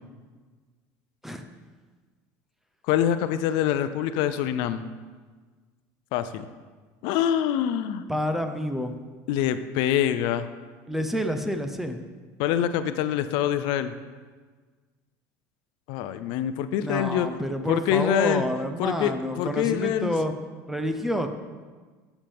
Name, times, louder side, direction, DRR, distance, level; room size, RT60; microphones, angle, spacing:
voice 1, 2.9-4.8 6.1-6.5 7.0-8.0 9.3-10.5 12.4-13.9 15.9-17.3 17.7-18.4 18.8-20.1, left 10 dB, 70° left, 11 dB, 0.5 m, -25 dB
voice 2, 8.1-8.9 10.9-12.0 16.8-20.3 20.7-21.3, equal, 5° right, 6 dB, 0.7 m, -28 dB
14.0 x 7.2 x 3.5 m, 1.4 s
cardioid pair, 130°, 8 cm